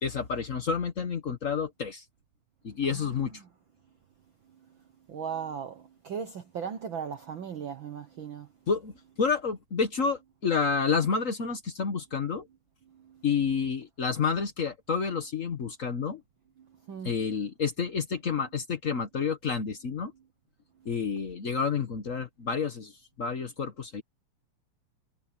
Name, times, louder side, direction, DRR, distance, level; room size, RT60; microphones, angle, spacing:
voice 1, 0.0-2.0 2.6-3.4 8.7-12.5 13.2-16.2 17.0-20.1 20.8-24.0, left 5 dB, 85° left, 0.7 m, -29 dB
voice 2, 2.8-3.5 5.1-8.5 12.9-13.2 16.9-17.1, right 7 dB, 65° right, 1.2 m, -38 dB
omnidirectional pair, 3.5 m